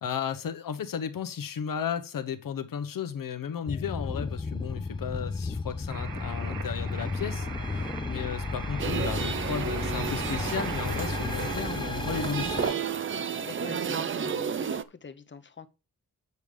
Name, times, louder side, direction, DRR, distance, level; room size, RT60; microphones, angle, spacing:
voice 1, 0.0-12.7, left 7 dB, 75° left, 1.0 m, -34 dB
sound 1, 3.7-12.7, left 3 dB, 15° left, 0.5 m, -33 dB
sound 2, 5.9-11.6, right 6 dB, 90° right, 1.2 m, -40 dB
sound 3, 8.8-14.8, right 7 dB, 35° right, 0.5 m, -32 dB
voice 2, 13.4-15.7, left 6 dB, 35° left, 0.9 m, -44 dB
8.1 x 5.2 x 5.0 m
wide cardioid pair, 120°, 34 cm